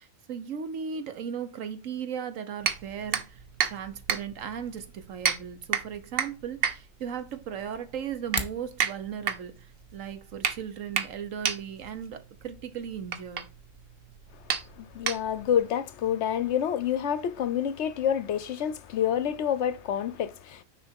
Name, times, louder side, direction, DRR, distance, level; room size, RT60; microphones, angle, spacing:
voice 1, 0.0-3.4 3.7-13.5, right 8 dB, 80° right, 1.3 m, -37 dB
sound 1, 2.6-15.6, right 7 dB, 55° right, 0.9 m, -33 dB
sound 2, 8.1-8.7, left 4 dB, 25° left, 0.8 m, -34 dB
voice 2, 14.8-20.6, left 9 dB, 65° left, 0.9 m, -28 dB
6.6 x 4.9 x 4.5 m
omnidirectional pair, 1.3 m